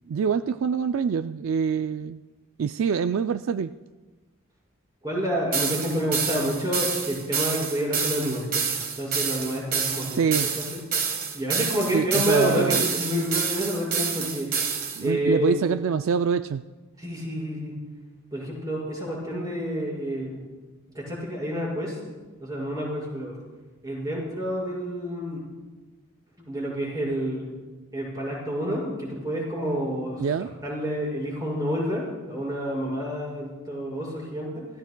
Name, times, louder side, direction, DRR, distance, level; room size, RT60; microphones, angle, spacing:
voice 1, 0.1-2.2 2.6-3.7 10.1-10.5 11.9-12.8 15.0-16.7 30.2-30.5, right 6 dB, 65° right, 11 dB, 0.3 m, -25 dB
voice 2, 5.0-8.5 9.0-10.8 11.3-14.7 15.0-15.5 17.0-17.8 18.3-20.4 20.9-22.0 22.4-23.4 23.8-25.4 26.4-27.5 27.9-30.2 30.6-34.7, equal, 20° right, -5 dB, 5.3 m, -28 dB
sound 1, 5.5-15.0, right 6 dB, 45° right, 1.4 m, -28 dB
27.0 x 15.0 x 2.2 m, 1.2 s
head